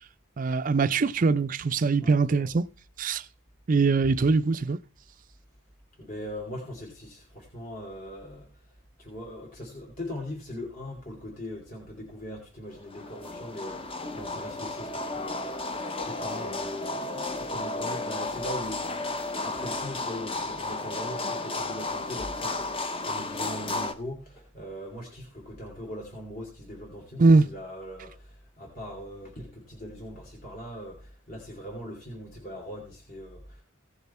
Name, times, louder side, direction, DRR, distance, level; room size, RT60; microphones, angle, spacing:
voice 1, 0.4-2.6 3.0-3.2 3.7-4.8 27.2-27.5, right 4 dB, 40° right, 0.4 m, -22 dB
voice 2, 2.0-2.5 5.9-33.6, left 1 dB, 45° left, 2.7 m, -40 dB
sound 1, 12.8-23.9, left 2 dB, 25° left, 0.8 m, -33 dB
16.0 x 7.0 x 4.3 m
head